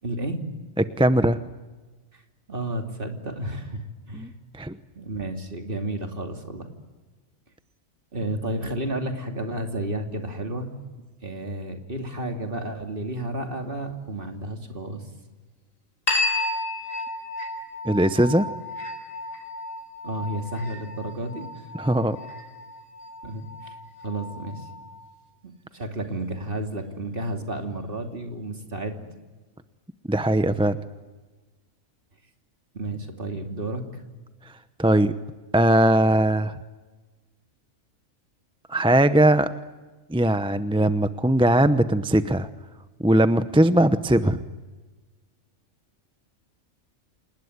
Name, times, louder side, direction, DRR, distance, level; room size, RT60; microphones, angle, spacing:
voice 1, 0.0-0.4 2.1-2.2 2.5-4.3 5.0-6.7 8.1-10.7 11.2-15.0 20.0-21.5 23.2-23.8 24.0-24.7 25.4-29.0 32.7-34.0, right 1 dB, 40° right, 4 dB, 3.0 m, -32 dB
voice 2, 0.8-1.4 4.1-4.8 17.8-18.5 21.7-22.2 30.1-30.8 34.8-35.1 35.5-36.6 38.7-39.5 40.1-42.5 43.0-44.4, right 1 dB, 5° right, 11 dB, 0.6 m, -20 dB
sound 1, 16.1-25.1, left 2 dB, 70° left, 4.9 m, -33 dB
28.5 x 20.0 x 9.7 m, 1.3 s
omnidirectional pair, 1.4 m